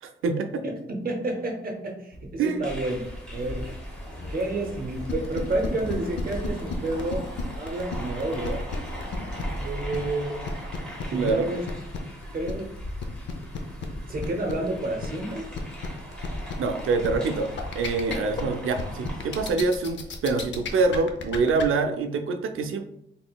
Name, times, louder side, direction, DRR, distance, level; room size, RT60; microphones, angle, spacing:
voice 1, 0.0-0.6 2.4-2.6 11.1-11.5 16.6-17.5 17.7-22.8, right 4 dB, 85° right, 7 dB, 0.5 m, -25 dB
voice 2, 0.6-3.1 3.3-3.7 4.3-7.3 7.6-8.6 9.6-10.5 11.1-11.7 12.3-12.8 14.0-15.5, right 2 dB, 45° right, 1 dB, 0.6 m, -30 dB
sound 1, 2.1-10.1, left 1 dB, 35° left, 1.0 m, -40 dB
sound 2, 2.6-19.5, equal, 5° left, 0.9 m, -39 dB
sound 3, 5.0-21.6, left 5 dB, 65° left, 0.6 m, -34 dB
3.8 x 3.7 x 2.2 m, 0.74 s
wide cardioid pair, 160°, 21 cm